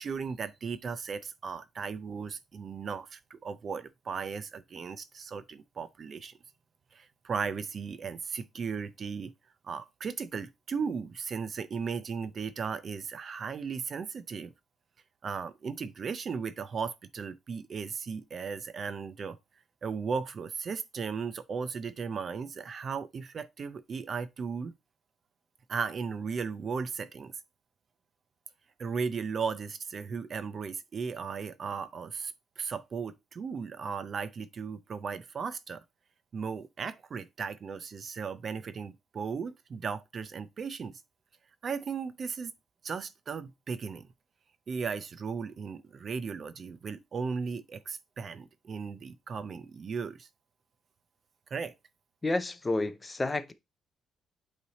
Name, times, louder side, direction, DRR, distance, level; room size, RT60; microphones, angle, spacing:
voice 1, 0.0-6.3 6.9-9.3 9.6-14.5 15.2-19.4 19.8-24.7 25.7-27.3 28.8-35.8 36.3-41.0 41.6-42.5 42.8-44.1 44.7-50.3 51.5-51.7, right 5 dB, 35° right, 0.5 m, -36 dB
voice 2, 52.2-53.5, left 2 dB, 15° left, 0.5 m, -30 dB
8.4 x 3.3 x 3.9 m
cardioid pair, 160°, 0 cm